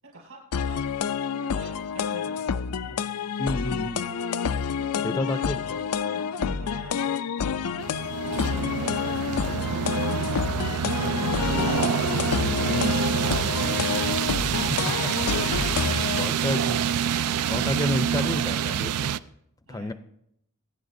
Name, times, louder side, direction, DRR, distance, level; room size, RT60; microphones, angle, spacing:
voice 1, 0.0-0.9 1.1-3.0 4.8-5.5 5.8-7.7 8.4-12.2 12.6-14.6 19.7-19.9, right 1 dB, 70° right, -3 dB, 6.3 m, -44 dB
sound 1, 0.5-16.3, left 7 dB, 80° left, 0.5 m, -28 dB
voice 2, 3.4-4.1 5.0-5.6 12.7-13.0 14.7-15.1 16.1-16.8 17.5-19.0 19.7-19.9, left 1 dB, 15° left, 12 dB, 0.5 m, -30 dB
sound 2, 7.8-19.2, right 8 dB, 90° right, 0.4 m, -26 dB
sound 3, 11.0-15.2, right 2 dB, 45° right, 0.7 m, -43 dB
26.5 x 9.6 x 2.7 m, 0.76 s
head